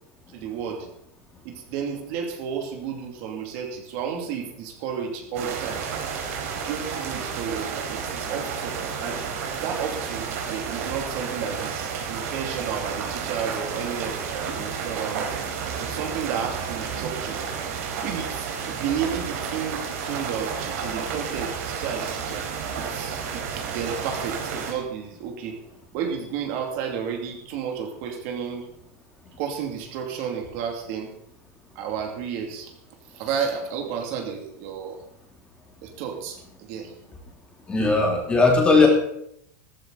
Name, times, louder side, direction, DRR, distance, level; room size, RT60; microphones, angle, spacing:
voice 1, 0.3-0.9 1.4-5.9 6.7-9.2 9.6-15.3 15.8-17.4 18.0-22.5 22.8-25.6 25.9-28.7 29.4-31.1 31.7-32.7 33.1-35.0 35.8-36.9, right 7 dB, 45° right, 3 dB, 2.6 m, -32 dB
sound 1, 5.3-24.7, right 6 dB, 60° right, 4.4 m, -31 dB
voice 2, 37.7-38.9, left 3 dB, 10° left, 0 dB, 3.0 m, -18 dB
15.5 x 14.5 x 4.0 m, 0.73 s
supercardioid pair, 170°, 9 cm